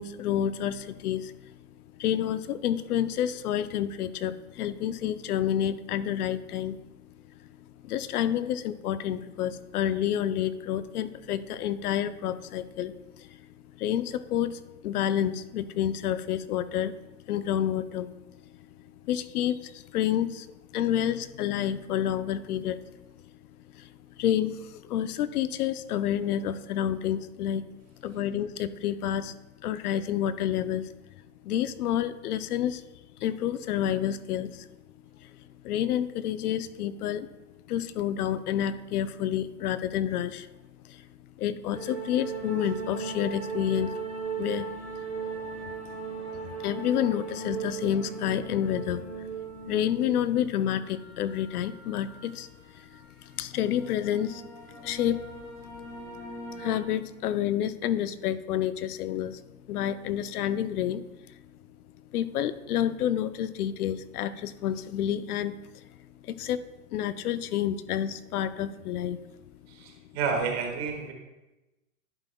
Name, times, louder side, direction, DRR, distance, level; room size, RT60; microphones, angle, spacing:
voice 1, 0.0-1.6 1.9-6.8 7.8-13.4 13.7-17.0 17.2-18.1 19.0-22.9 23.7-27.7 28.0-30.9 31.4-32.9 33.2-34.7 35.2-37.3 37.7-40.5 40.8-41.1 41.4-44.0 44.3-44.7 46.6-49.3 49.6-52.5 52.7-54.4 54.8-55.4 56.6-59.4 59.7-61.4 62.1-65.9 66.2-66.6 66.9-69.2, left 10 dB, 75° left, 13 dB, 0.6 m, -29 dB
sound 1, 41.7-56.8, right 5 dB, 5° left, 1.1 m, -38 dB
voice 2, 69.7-71.1, right 5 dB, 40° right, 2 dB, 1.6 m, -30 dB
11.0 x 7.8 x 2.3 m, 1.0 s
supercardioid pair, 170°, 46 cm